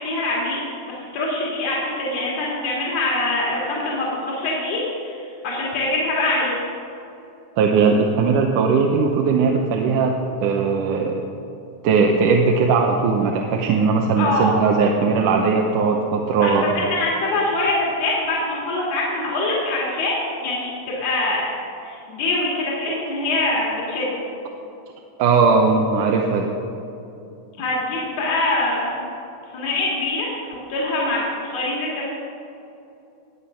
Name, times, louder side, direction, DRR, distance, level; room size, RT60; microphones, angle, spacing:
voice 1, 0.0-6.6 14.2-14.5 16.4-21.5 21.8-24.2 27.6-29.0 29.5-32.1, left 2 dB, 55° left, -4 dB, 3.3 m, -24 dB
voice 2, 7.6-10.2 10.4-11.2 11.8-16.6 25.2-26.5, right 5 dB, 90° right, 1 dB, 2.4 m, -18 dB
19.5 x 8.0 x 5.8 m, 2.8 s
omnidirectional pair, 3.6 m